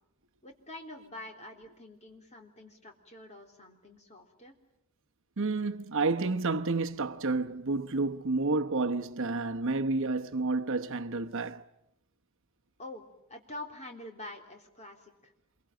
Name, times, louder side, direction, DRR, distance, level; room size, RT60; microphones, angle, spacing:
voice 1, 0.4-4.6 12.8-15.3, left 1 dB, 30° left, 3.6 m, -46 dB
voice 2, 5.4-11.6, right 3 dB, 60° right, 1.0 m, -30 dB
27.5 x 23.5 x 9.1 m
head